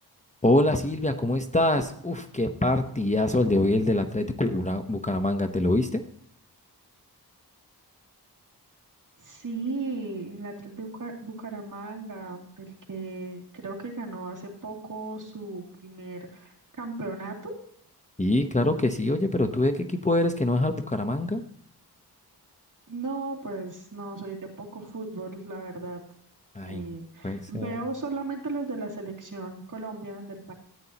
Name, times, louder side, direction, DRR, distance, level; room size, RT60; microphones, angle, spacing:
voice 1, 0.4-6.0 18.2-21.4 26.5-26.8 27.2-27.8, left 1 dB, 20° left, 7 dB, 0.8 m, -25 dB
voice 2, 9.2-17.5 22.9-26.0 26.6-30.5, right 3 dB, 50° right, -1 dB, 2.7 m, -36 dB
13.5 x 9.4 x 2.9 m, 0.66 s
wide cardioid pair, 85°, 39 cm